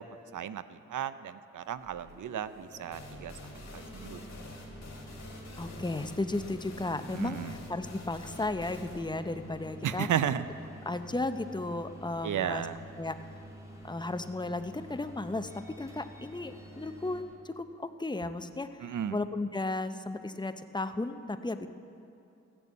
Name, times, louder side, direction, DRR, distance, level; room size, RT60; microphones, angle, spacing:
voice 1, 0.3-3.3 3.7-4.2 7.1-7.6 9.8-10.4 12.2-12.8 18.8-19.2, right 9 dB, 75° right, 14 dB, 0.6 m, -34 dB
sound 1, 1.6-17.2, right 1 dB, 10° right, 2.6 m, -49 dB
sound 2, 2.9-10.4, left 2 dB, 60° left, 2.2 m, -47 dB
voice 2, 5.6-10.1 10.9-12.7 13.0-13.3 13.8-21.7, left 2 dB, 15° left, 10 dB, 0.6 m, -34 dB
15.0 x 6.8 x 8.5 m, 2.6 s
cardioid pair, 50°, 30 cm